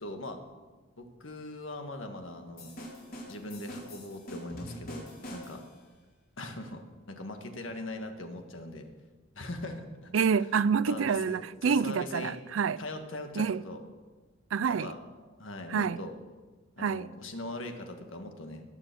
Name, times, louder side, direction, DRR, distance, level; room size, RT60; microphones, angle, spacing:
voice 1, 0.0-0.4 1.0-2.7 3.3-5.6 6.4-8.9 9.4-10.1 10.9-12.4 12.8-13.8 14.7-15.0 15.4-16.1 16.8-18.6, left 2 dB, 80° left, 1.7 m, -40 dB
sound 1, 2.6-5.8, equal, 50° left, 4.0 m, -44 dB
voice 2, 10.1-12.8 13.4-13.6 14.5-14.9 15.7-16.0 16.8-17.1, right 6 dB, 85° right, 0.4 m, -27 dB
20.0 x 7.0 x 6.8 m
head